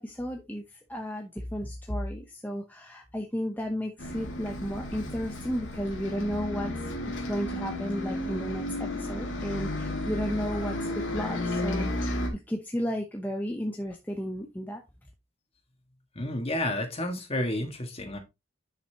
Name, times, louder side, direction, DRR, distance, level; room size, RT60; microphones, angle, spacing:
voice 1, 0.0-6.7 7.1-14.8, equal, 10° left, 0.8 m, -33 dB
Bus, 4.0-12.3, left 1 dB, 65° left, 2.3 m, -33 dB
voice 2, 16.2-18.2, left 1 dB, 30° left, 1.7 m, -30 dB
10.0 x 5.8 x 2.9 m
head